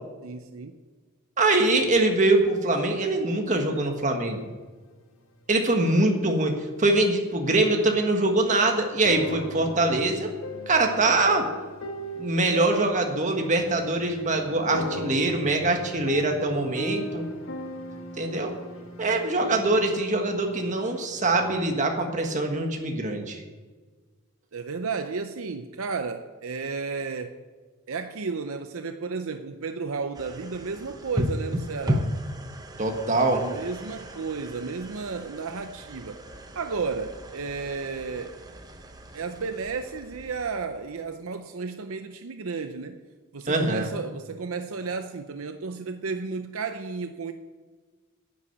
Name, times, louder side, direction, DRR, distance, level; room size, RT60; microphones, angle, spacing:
voice 1, 0.2-0.8 24.5-27.4 27.9-32.1 33.4-36.2 36.5-38.4 39.1-43.0 43.3-47.3, right 4 dB, 70° right, 8 dB, 0.6 m, -33 dB
voice 2, 1.4-4.5 5.5-10.3 10.7-11.4 12.2-17.2 18.2-18.5 19.0-23.4 32.8-33.5 43.5-43.9, right 2 dB, 35° right, 3 dB, 1.5 m, -23 dB
sound 1, 8.5-21.6, equal, 65° left, 1.5 m, -38 dB
sound 2, 30.1-41.2, equal, 15° right, 0.8 m, -35 dB
10.5 x 8.5 x 8.0 m, 1.4 s
head